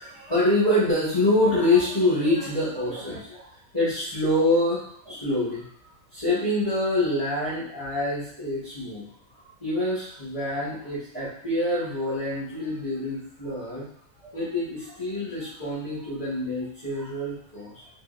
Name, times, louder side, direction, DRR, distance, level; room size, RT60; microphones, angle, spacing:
voice 1, 0.0-3.5 3.7-9.1 9.3-13.9 14.2-17.9, left 1 dB, 30° left, -12 dB, 1.5 m, -26 dB
3.8 x 3.1 x 2.5 m, 0.64 s
omnidirectional pair, 1.5 m